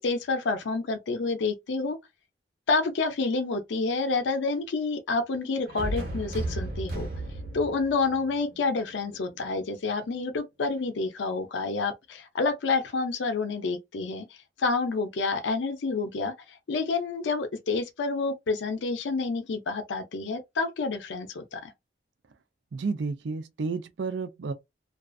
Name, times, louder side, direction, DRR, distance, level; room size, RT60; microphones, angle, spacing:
voice 1, 0.0-2.0 2.7-7.1 7.5-14.3 14.6-21.7, left 3 dB, 80° left, 0.5 m, -28 dB
sound 1, 5.7-9.5, right 1 dB, 55° right, 0.9 m, -35 dB
voice 2, 22.7-24.5, right 4 dB, 75° right, 0.5 m, -31 dB
2.4 x 2.3 x 2.3 m
head